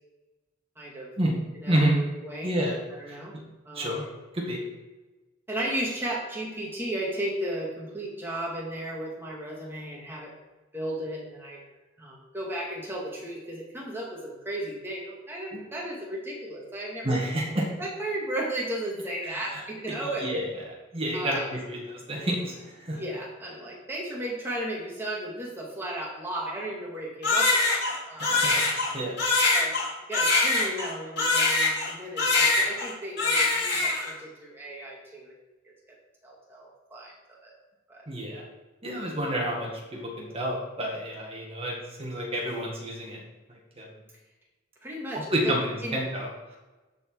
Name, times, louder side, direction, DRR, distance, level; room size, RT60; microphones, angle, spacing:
voice 1, 0.8-1.1 1.6-1.9 2.2-2.5 3.0-3.4 3.7-4.1 5.5-10.3 10.7-11.6 12.0-17.2 17.8-20.3 21.1-21.5 22.9-28.4 29.5-29.8 30.1-35.4 35.6-35.7 36.2-37.1 37.4-37.5 37.9-38.1 39.2-39.4 44.8-45.5 45.8-45.9, right 1 dB, 10° right, -3 dB, 2.0 m, -35 dB
voice 2, 1.7-2.0 2.4-2.8 3.1-3.4 3.7-4.1 4.3-4.6 15.5-15.6 17.0-17.6 19.3-19.6 20.0-20.4 20.9-23.0 27.9-29.2 38.1-38.4 38.8-43.2 43.5-43.9 45.3-46.6, right 1 dB, 30° right, -2 dB, 1.9 m, -30 dB
Crying sobbing, 27.2-31.9 32.2-32.9 33.2-34.1, left 3 dB, 65° left, 2.8 m, -23 dB
13.0 x 4.7 x 4.6 m, 1.2 s
head